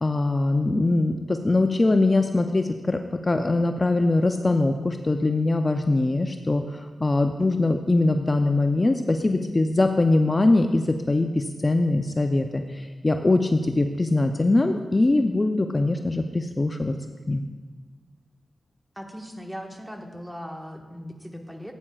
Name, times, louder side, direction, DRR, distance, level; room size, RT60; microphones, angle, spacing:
voice 1, 0.0-16.9 17.3-17.4, left 2 dB, 35° left, 5 dB, 0.5 m, -22 dB
voice 2, 18.9-21.7, equal, 5° right, 2 dB, 1.4 m, -38 dB
14.5 x 8.7 x 2.4 m, 1.4 s
cardioid pair, 50°, 0 cm